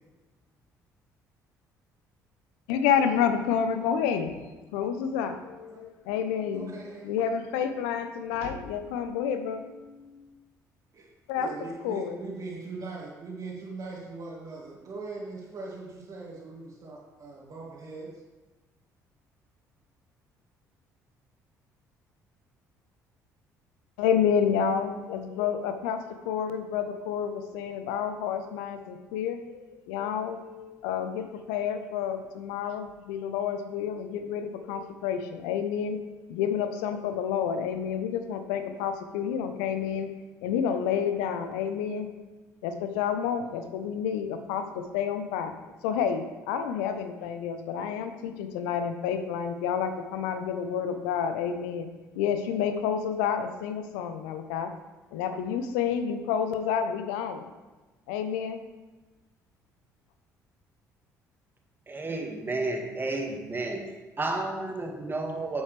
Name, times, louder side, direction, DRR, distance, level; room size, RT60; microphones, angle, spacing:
voice 1, 2.7-4.5 4.7-6.8 7.0-10.3 11.3-11.5 11.8-12.2 24.0-36.0 36.3-40.1 40.4-42.1 42.6-45.6 45.8-51.9 52.1-54.7 55.1-57.5 58.1-58.6, left 7 dB, 65° left, 8 dB, 0.8 m, -29 dB
voice 2, 6.5-7.1 10.9-11.1 11.3-18.1, right 3 dB, 40° right, -7 dB, 2.2 m, -40 dB
voice 3, 61.9-63.8 64.2-65.6, right 2 dB, 20° right, 2 dB, 1.9 m, -31 dB
11.0 x 8.2 x 3.4 m, 1.2 s
figure-of-eight pair, 50°, 9 cm